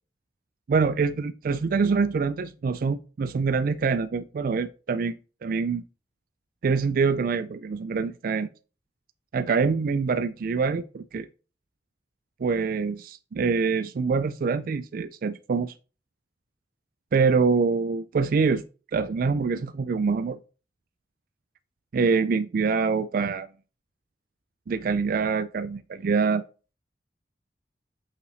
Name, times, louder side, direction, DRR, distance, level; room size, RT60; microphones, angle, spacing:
voice 1, 0.7-5.2 5.4-5.8 6.6-8.5 9.3-11.3 12.4-15.7 17.1-18.6 18.9-20.4 21.9-23.5 24.7-26.4, right 5 dB, 55° right, 0.4 m, -25 dB
6.5 x 5.5 x 4.0 m
head